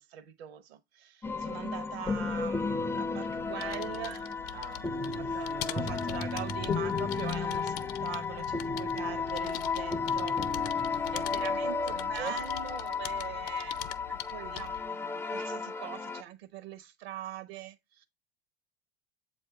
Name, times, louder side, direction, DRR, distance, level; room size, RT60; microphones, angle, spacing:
voice 1, 0.0-4.2 5.2-5.5 5.8-7.8 8.0-10.4 11.1-18.1, right 11 dB, 65° right, 1.0 m, -42 dB
sound 1, 1.2-16.2, left 4 dB, 5° left, 0.4 m, -33 dB
sound 2, 3.3-14.9, left 13 dB, 55° left, 0.6 m, -43 dB
voice 2, 4.5-5.9 10.8-12.4, right 8 dB, 85° right, 0.6 m, -45 dB
7.6 x 2.8 x 4.6 m
hypercardioid pair, 90°, 33 cm